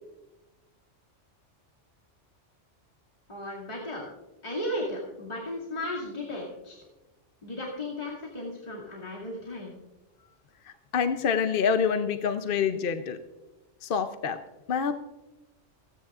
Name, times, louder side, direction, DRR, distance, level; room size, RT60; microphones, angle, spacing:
voice 1, 3.3-4.1 4.4-6.8 7.4-9.7, left 1 dB, 35° left, -5 dB, 2.4 m, -35 dB
voice 2, 10.9-13.2 13.8-14.4 14.7-15.0, left 6 dB, 55° left, 8 dB, 0.8 m, -26 dB
28.0 x 10.0 x 2.4 m, 1.1 s
omnidirectional pair, 1.3 m